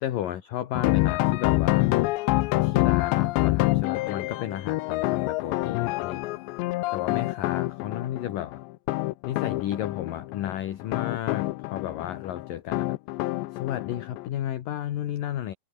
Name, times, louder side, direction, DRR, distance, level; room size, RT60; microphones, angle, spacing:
voice 1, 0.0-1.9 2.6-6.2 6.9-8.6 9.2-13.0 13.5-15.5, left 11 dB, 60° left, 2.8 m, -33 dB
sound 1, 0.8-14.3, left 20 dB, 85° left, 3.0 m, -26 dB
omnidirectional pair, 5.0 m